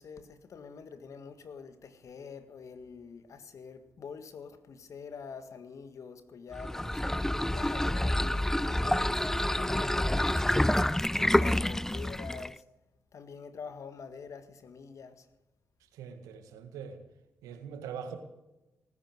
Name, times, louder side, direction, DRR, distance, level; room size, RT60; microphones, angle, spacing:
voice 1, 0.0-7.0 7.5-12.6 13.1-15.3, left 5 dB, 65° left, 1.7 m, -46 dB
sound 1, 6.5-12.6, left 1 dB, 5° left, 0.5 m, -28 dB
voice 2, 15.9-17.0 17.4-18.2, right 7 dB, 85° right, 1.8 m, -42 dB
18.5 x 9.9 x 7.9 m
supercardioid pair, 45°, 6 cm